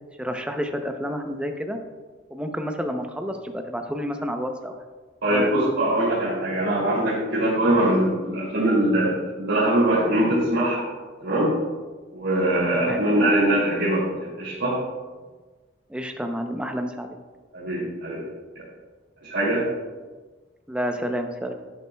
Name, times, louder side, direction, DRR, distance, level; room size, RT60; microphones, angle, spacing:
voice 1, 0.2-1.8 2.3-4.7 5.2-5.5 12.7-13.4 15.9-17.2 20.7-21.5, equal, 5° right, 4 dB, 0.6 m, -29 dB
voice 2, 5.2-10.8 11.2-11.5 12.1-14.7 17.5-18.2 18.5-18.6 19.2-19.7, right 1 dB, 90° right, -10 dB, 2.7 m, -22 dB
11.0 x 8.3 x 2.3 m, 1.3 s
head